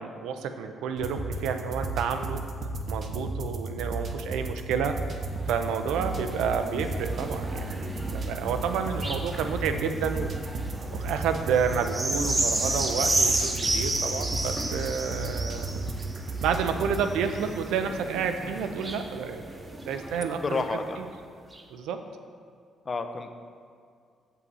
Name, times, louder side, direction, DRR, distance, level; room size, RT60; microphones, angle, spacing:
voice 1, 0.0-2.4 2.9-5.0 5.5-10.3 10.9-15.9 16.4-20.6 21.7-22.0, right 6 dB, 90° right, 7 dB, 0.5 m, -30 dB
sound 1, 1.0-17.0, right 2 dB, 50° right, 0.7 m, -34 dB
sound 2, 5.1-20.9 21.5-21.6, right 2 dB, 20° right, 0.8 m, -33 dB
voice 2, 20.3-21.0 22.9-23.3, left 3 dB, 35° left, 7 dB, 0.5 m, -30 dB
7.3 x 5.5 x 4.1 m, 2.2 s
cardioid pair, 90°, 0 cm